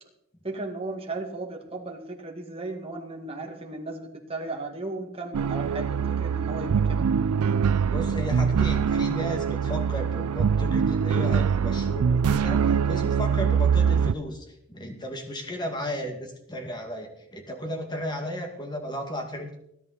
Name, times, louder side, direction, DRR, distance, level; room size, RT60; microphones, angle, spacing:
voice 1, 0.4-7.1, right 2 dB, 25° right, 1 dB, 2.1 m, -35 dB
sound 1, 5.3-14.1, right 6 dB, 85° right, 0.4 m, -23 dB
voice 2, 7.9-19.5, equal, 20° left, 4 dB, 2.2 m, -34 dB
20.5 x 11.0 x 4.3 m, 0.77 s
head